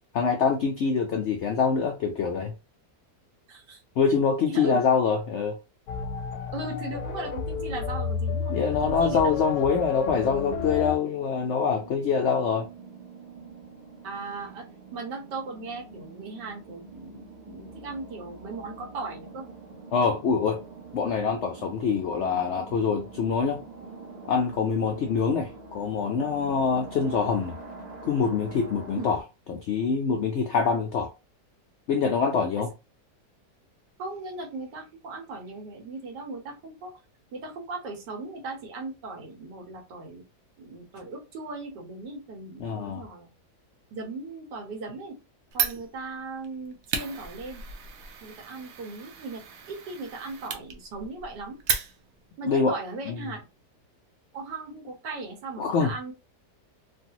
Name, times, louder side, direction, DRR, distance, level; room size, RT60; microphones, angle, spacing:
voice 1, 0.1-2.5 4.0-5.6 8.5-12.7 19.9-20.6 20.9-23.6 24.3-27.6 28.0-29.2 29.5-31.1 31.9-32.7 42.6-43.0 52.4-52.7 53.1-53.2 55.6-55.9, left 5 dB, 85° left, 0.6 m, -25 dB
voice 2, 3.5-3.8 4.4-4.8 6.5-9.2 14.0-14.7 14.9-19.5 29.0-29.1 32.6-32.7 34.0-36.9 37.3-40.2 40.6-43.3 43.9-45.2 45.5-47.6 48.2-49.4 49.7-51.6 52.4-53.4 54.3-56.1, right 3 dB, 85° right, 1.6 m, -37 dB
sound 1, 5.9-11.0, left 5 dB, 70° left, 1.0 m, -31 dB
sound 2, 9.9-29.2, right 3 dB, 45° right, 0.5 m, -45 dB
Fire, 45.5-52.3, right 7 dB, 65° right, 1.0 m, -34 dB
3.2 x 2.3 x 2.7 m
omnidirectional pair, 1.8 m